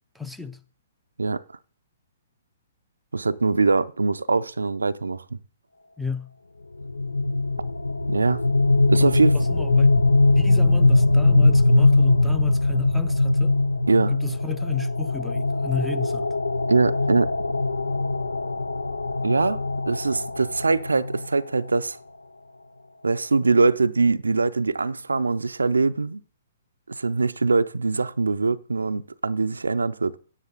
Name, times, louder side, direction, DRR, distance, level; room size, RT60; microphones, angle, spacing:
voice 1, 0.1-0.6 6.0-6.3 9.0-9.9 10.4-13.6 14.1-16.3, left 5 dB, ahead, 0.6 m, -33 dB
voice 2, 3.1-5.2 8.1-8.4 8.9-9.4 13.9-14.1 16.7-17.3 19.2-19.6 19.9-22.0 23.0-26.2 26.9-30.2, right 3 dB, 80° right, 0.4 m, -22 dB
sound 1, 6.8-21.7, left 2 dB, 85° left, 0.5 m, -21 dB
10.5 x 9.9 x 4.0 m
figure-of-eight pair, 125°, 0 cm